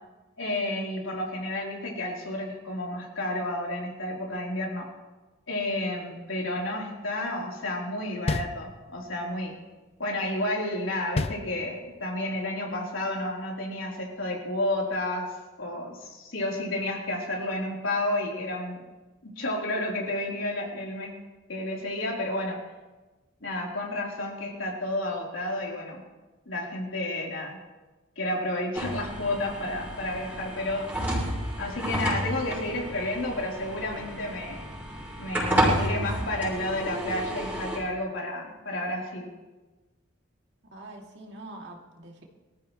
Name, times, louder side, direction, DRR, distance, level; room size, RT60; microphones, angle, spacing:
voice 1, 0.4-4.9 5.5-9.6 10.0-15.3 15.6-18.8 19.2-21.2 21.5-22.6 23.4-26.0 26.5-27.6 28.2-30.9 31.6-34.7 35.2-39.3, left 1 dB, 70° left, -3 dB, 4.1 m, -31 dB
sound 1, 8.3-9.2 11.1-12.1, left 3 dB, 30° left, 0.4 m, -31 dB
sound 2, 28.7-37.8, equal, 10° right, 5.9 m, -31 dB
voice 2, 40.6-42.2, right 2 dB, 55° right, 0 dB, 2.8 m, -44 dB
24.5 x 14.5 x 3.3 m, 1.2 s
head